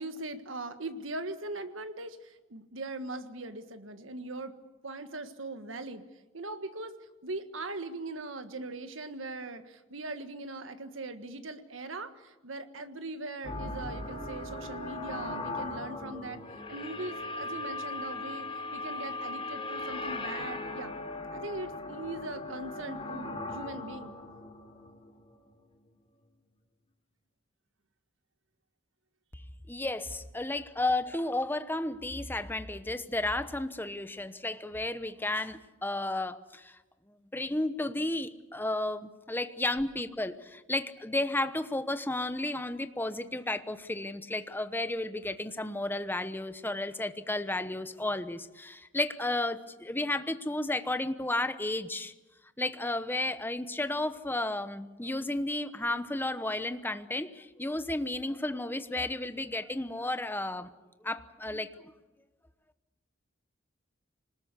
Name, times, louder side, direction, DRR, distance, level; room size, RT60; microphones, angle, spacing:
voice 1, 0.0-4.6 4.8-6.1 6.3-6.9 7.2-16.4 16.7-20.9 21.3-24.2, right 2 dB, 75° right, 9 dB, 1.6 m, -40 dB
sound 1, 13.4-25.6, left 2 dB, 30° left, 3.2 m, -38 dB
voice 2, 29.7-36.8 37.1-52.1 52.6-60.7 61.0-61.7, left 2 dB, 10° left, 10 dB, 1.0 m, -33 dB
25.5 x 20.0 x 8.2 m, 1.1 s
head